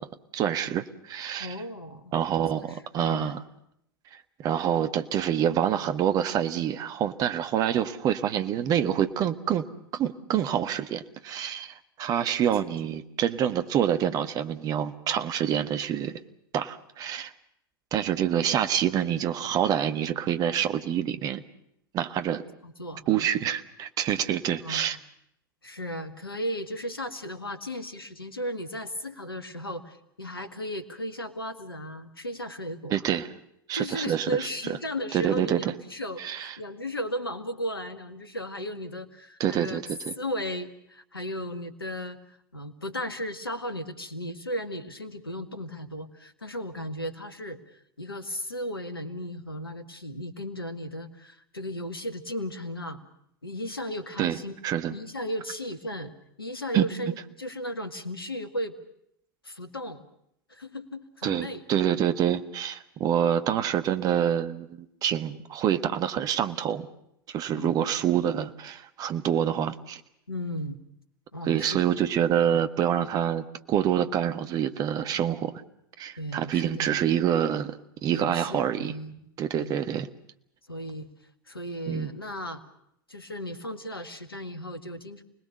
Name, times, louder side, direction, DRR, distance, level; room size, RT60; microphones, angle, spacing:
voice 1, 0.3-1.6 2.1-3.4 4.4-9.6 9.9-16.2 16.5-17.3 17.9-21.4 21.9-22.4 23.1-25.0 32.9-33.3 33.7-34.5 35.1-35.7 36.2-36.6 39.4-40.1 54.2-54.4 54.6-54.9 56.7-56.9 61.2-66.9 67.3-70.0 71.4-75.5 76.0-77.8 78.0-78.9 79.4-80.1 81.9-82.1, right 9 dB, 30° right, 11 dB, 1.4 m, -26 dB
voice 2, 1.4-2.2 2.6-3.3 22.6-23.3 24.6-25.0 25.6-33.0 33.7-39.8 40.2-53.0 53.4-54.6 54.9-56.1 56.4-58.8 59.4-60.1 60.5-61.6 63.2-63.4 67.6-67.7 70.3-70.8 71.3-72.0 76.2-77.0 78.1-79.2 79.5-79.8 80.7-81.1 81.5-82.6 83.1-85.2, equal, 80° left, 10 dB, 2.0 m, -35 dB
29.5 x 20.0 x 6.8 m, 0.76 s
figure-of-eight pair, 90°, 12 cm